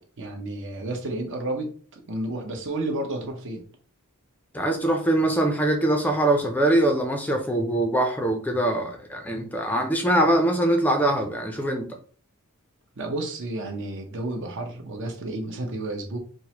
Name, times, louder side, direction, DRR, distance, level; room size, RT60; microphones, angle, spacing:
voice 1, 0.2-3.6 13.0-16.2, right 2 dB, 60° right, 0.8 m, -31 dB
voice 2, 4.5-11.9, right 1 dB, 10° left, 0.4 m, -23 dB
4.6 x 2.1 x 2.9 m
head